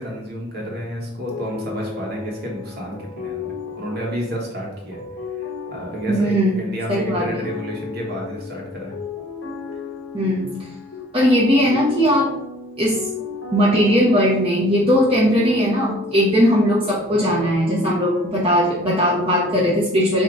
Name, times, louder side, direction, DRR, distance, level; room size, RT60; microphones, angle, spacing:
voice 1, 0.0-5.0 5.4-8.9 9.7-9.8, equal, 50° right, -2 dB, 1.2 m, -30 dB
sound 1, 1.3-19.5, left 5 dB, 80° left, 0.8 m, -34 dB
voice 2, 6.1-6.6 6.9-7.5 10.1-10.5 11.1-12.3 12.8-13.1 13.5-20.2, equal, 30° right, -6 dB, 0.8 m, -18 dB
3.8 x 2.8 x 4.6 m, 0.83 s
head